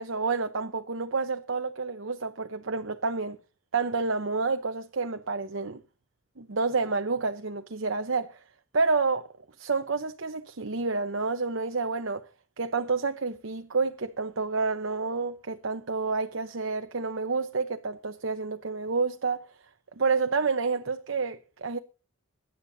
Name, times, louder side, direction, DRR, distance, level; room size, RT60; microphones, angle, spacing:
voice 1, 0.0-3.4 3.7-5.8 6.4-8.4 8.7-9.3 9.6-12.2 12.6-19.5 20.0-21.8, right 4 dB, 70° right, 0.9 m, -29 dB
23.0 x 10.5 x 2.7 m
head